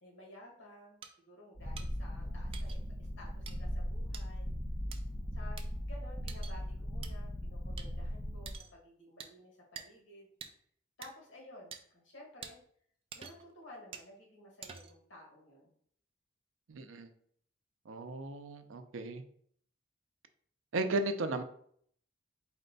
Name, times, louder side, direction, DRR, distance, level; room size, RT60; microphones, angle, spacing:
voice 1, 0.0-4.5 5.3-10.3 11.0-12.6 13.1-15.7, left 1 dB, 75° left, -2 dB, 1.5 m, -54 dB
sound 1, 1.0-1.1 1.8-1.9 2.5-2.8 3.5-3.6 4.1-4.3 4.9-5.0 5.6-5.7 6.3-6.5 7.0-7.1 7.8-7.9 8.5-8.7 9.2-9.3 9.8-9.9 10.4-10.5 11.0-11.1 11.7-11.8 12.4-12.5 13.1-13.5 13.9-14.1 14.6-15.0, right 7 dB, 30° right, 0.3 m, -47 dB
Purr, 1.6-8.6, equal, 15° left, 0.6 m, -38 dB
voice 2, 16.7-17.1 17.9-19.2 20.7-21.4, right 2 dB, 85° right, 8 dB, 0.5 m, -35 dB
4.3 x 2.2 x 3.9 m, 0.62 s
head